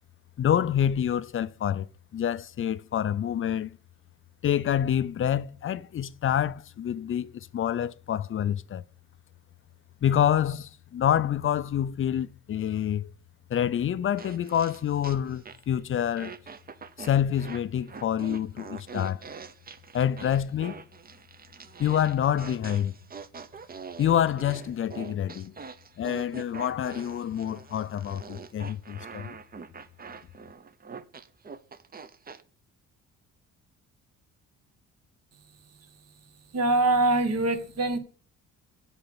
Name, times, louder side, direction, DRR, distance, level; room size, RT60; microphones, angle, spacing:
voice 1, 0.4-1.9 2.1-3.7 4.4-8.8 10.0-13.1 13.5-16.4 17.0-19.2 19.9-20.8 21.8-22.9 24.0-25.5 26.0-29.4, left 10 dB, 45° left, 0.5 m, -27 dB
sound 1, 14.2-15.8 16.2-32.4, right 5 dB, 30° right, 0.8 m, -44 dB
voice 2, 36.5-38.0, right 2 dB, 55° right, 1.7 m, -23 dB
7.9 x 5.0 x 7.0 m
cardioid pair, 90°, 30 cm